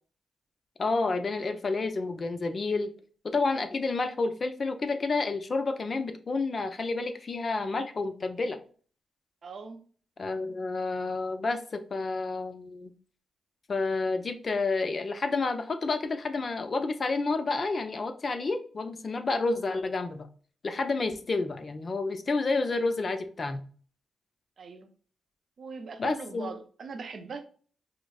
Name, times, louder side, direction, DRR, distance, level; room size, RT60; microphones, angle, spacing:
voice 1, 0.8-2.9 3.2-8.6 10.2-12.9 13.7-20.3 20.6-23.6 26.0-26.5, left 3 dB, 45° left, 8 dB, 0.5 m, -30 dB
voice 2, 9.4-9.8 24.6-24.9 25.6-27.4, right 5 dB, 55° right, 7 dB, 0.6 m, -40 dB
4.9 x 2.0 x 2.3 m, 0.43 s
cardioid pair, 75°, 0 cm